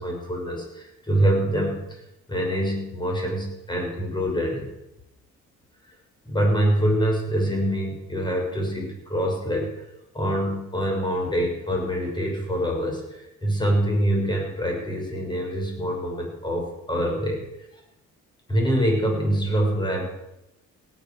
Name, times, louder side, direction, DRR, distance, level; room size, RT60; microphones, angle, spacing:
voice 1, 0.0-2.0 2.3-4.7 6.2-9.8 10.1-17.4 18.5-20.0, equal, 15° left, 0 dB, 6.6 m, -25 dB
17.0 x 11.0 x 6.6 m, 0.88 s
cardioid pair, 90°, 30 cm